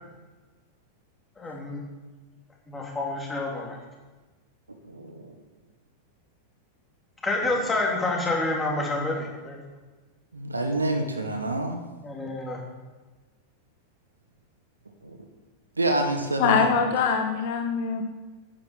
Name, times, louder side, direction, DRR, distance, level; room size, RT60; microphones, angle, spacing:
voice 1, 1.4-1.8 2.7-3.8 7.2-9.6 12.0-12.6, left 2 dB, 15° left, -2 dB, 3.5 m, -28 dB
voice 2, 4.9-5.3 7.4-7.5 10.3-11.8 15.0-15.2 15.8-16.8, right 1 dB, 80° right, 5 dB, 1.3 m, -27 dB
voice 3, 16.4-18.0, left 6 dB, 50° left, 4 dB, 1.3 m, -23 dB
10.0 x 9.7 x 7.5 m, 1.3 s
figure-of-eight pair, 90°, 0 cm